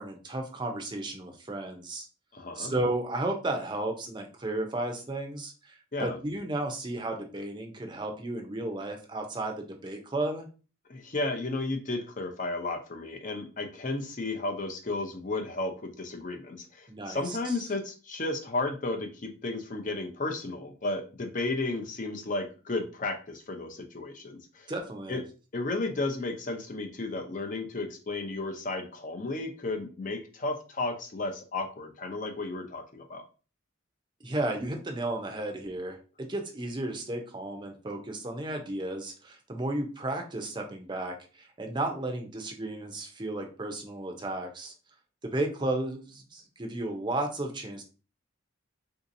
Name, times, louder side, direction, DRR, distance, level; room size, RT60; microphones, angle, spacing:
voice 1, 0.0-2.1 2.5-10.5 16.9-17.5 24.7-25.2 34.2-44.7 45.2-47.8, right 2 dB, 25° right, 3 dB, 0.5 m, -33 dB
voice 2, 2.3-2.7 5.9-6.2 10.9-24.7 25.1-25.2 25.5-33.2, left 2 dB, 40° left, 5 dB, 0.6 m, -33 dB
3.7 x 2.8 x 2.5 m, 0.35 s
head